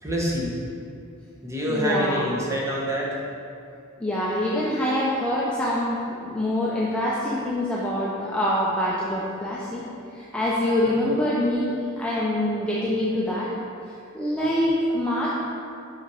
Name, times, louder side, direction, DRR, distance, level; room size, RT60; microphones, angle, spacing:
voice 1, 0.0-0.6 1.4-3.2 10.8-11.0 14.4-14.5, equal, 15° right, -4 dB, 1.1 m, -26 dB
voice 2, 1.7-2.3 4.0-9.8 10.2-13.5 14.1-15.3, left 1 dB, 5° left, -7 dB, 0.6 m, -25 dB
6.0 x 5.6 x 4.8 m, 2.6 s
head